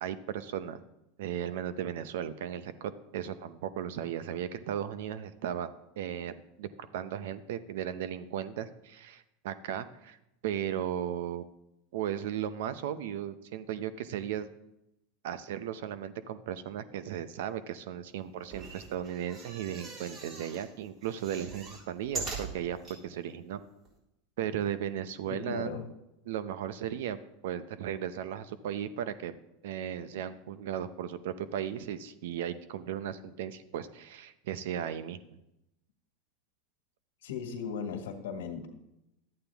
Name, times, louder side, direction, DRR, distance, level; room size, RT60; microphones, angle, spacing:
voice 1, 0.0-0.8 1.2-5.7 6.0-10.2 10.4-11.4 11.9-14.5 15.2-22.8 23.0-23.6 24.4-25.7 26.3-27.2 27.4-29.3 29.6-35.2, right 10 dB, 75° right, 13 dB, 0.7 m, -36 dB
sound 1, 18.4-20.7 21.0-23.0 23.6-23.7 23.8-23.9, right 3 dB, 40° right, 4.1 m, -42 dB
voice 2, 25.3-25.8 37.2-38.7, left 6 dB, 80° left, 5 dB, 1.7 m, -37 dB
11.5 x 8.7 x 3.5 m, 0.87 s
hypercardioid pair, 110°, 0 cm